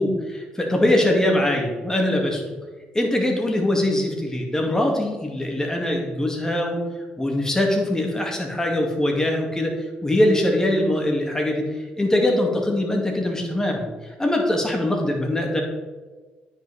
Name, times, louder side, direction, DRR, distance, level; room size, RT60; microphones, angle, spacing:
voice 1, 0.0-2.4 2.9-6.8 7.2-15.6, left 1 dB, 15° left, 1 dB, 2.2 m, -22 dB
9.1 x 5.6 x 4.2 m, 1.3 s
supercardioid pair, 60°, 4 cm